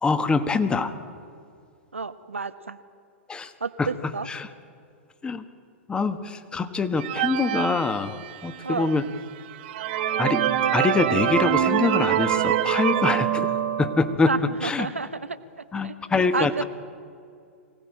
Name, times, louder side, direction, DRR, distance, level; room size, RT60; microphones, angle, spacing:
voice 1, 0.0-0.9 3.3-3.5 3.8-4.5 5.2-5.4 5.9-9.0 10.2-10.5 10.7-13.5 13.8-14.3 14.6-14.9 15.7-16.6, left 4 dB, 15° left, 10 dB, 1.5 m, -25 dB
voice 2, 1.9-2.8 3.4-4.3 8.6-9.1 14.2-15.4 15.7-16.6, right 4 dB, 85° right, 12 dB, 1.1 m, -31 dB
sound 1, 7.0-8.6 9.2-9.3 9.6-14.2, right 11 dB, 50° right, 1.2 m, -24 dB
24.0 x 18.0 x 8.8 m, 2.3 s
figure-of-eight pair, 100°, 7 cm